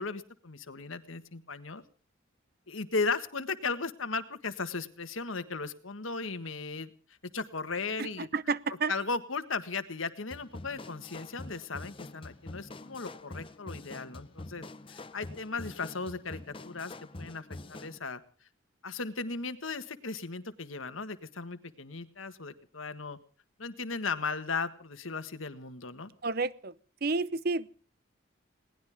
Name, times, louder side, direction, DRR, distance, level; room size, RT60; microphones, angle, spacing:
voice 1, 0.0-1.8 2.7-6.9 7.2-8.3 8.9-18.2 18.8-23.2 23.6-26.1, left 4 dB, 80° left, 11 dB, 1.6 m, -36 dB
voice 2, 8.0-8.9 26.2-26.7 27.0-27.7, right 4 dB, 50° right, 17 dB, 0.8 m, -30 dB
sound 1, 10.3-18.0, left 2 dB, 25° left, 0.7 m, -45 dB
21.5 x 18.5 x 3.6 m, 0.39 s
head